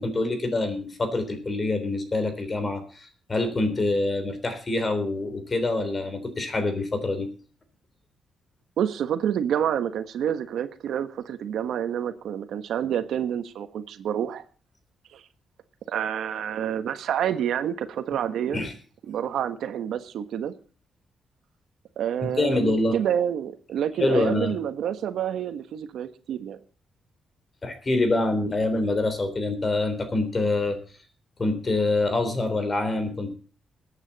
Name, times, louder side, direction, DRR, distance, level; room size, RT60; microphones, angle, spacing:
voice 1, 0.0-7.3 18.5-18.7 22.2-23.0 24.0-24.5 27.6-30.8 31.4-33.3, left 2 dB, 25° left, 9 dB, 3.6 m, -25 dB
voice 2, 8.8-14.4 15.1-15.2 15.9-18.6 19.1-20.5 22.0-26.6, right 9 dB, 85° right, 9 dB, 1.3 m, -28 dB
21.5 x 9.1 x 4.1 m, 0.40 s
cardioid pair, 135°, 0 cm